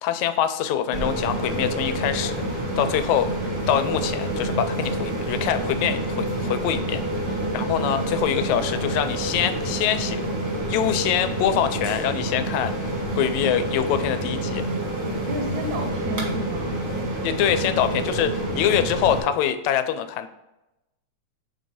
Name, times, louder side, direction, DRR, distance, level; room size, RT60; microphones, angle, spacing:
voice 1, 0.0-3.3 3.7-7.0 7.3-10.3 10.7-14.6 17.2-20.3, left 10 dB, 80° left, 11 dB, 1.9 m, -24 dB
sound 1, 0.9-19.2, right 1 dB, 40° right, 1.0 m, -28 dB
voice 2, 7.4-7.8 15.3-16.8, right 1 dB, 85° right, 4 dB, 2.2 m, -32 dB
4.9 x 3.9 x 5.0 m, 0.95 s
omnidirectional pair, 3.3 m